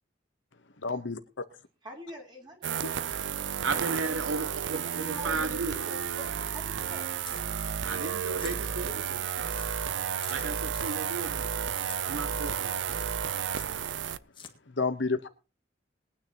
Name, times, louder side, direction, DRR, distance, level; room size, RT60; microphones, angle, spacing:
voice 1, 0.8-1.4 2.8-2.9 14.7-15.3, left 4 dB, 65° left, 1.0 m, -30 dB
voice 2, 1.8-3.1 4.8-7.3 8.4-8.5, equal, 25° right, 3.9 m, -44 dB
sound 1, 2.6-14.2, right 8 dB, 65° right, 0.5 m, -32 dB
voice 3, 3.6-5.7 7.8-9.3 10.3-11.8 12.0-12.8, right 3 dB, 90° right, 1.0 m, -35 dB
sound 2, 7.2-8.0 8.3-8.6 9.0-9.1 9.5-9.7 10.2-10.9 11.7-12.0 12.3-12.6 12.9-13.1 13.5-14.0 14.3-14.5, left 7 dB, 25° left, 1.7 m, -48 dB
21.0 x 9.5 x 2.9 m
head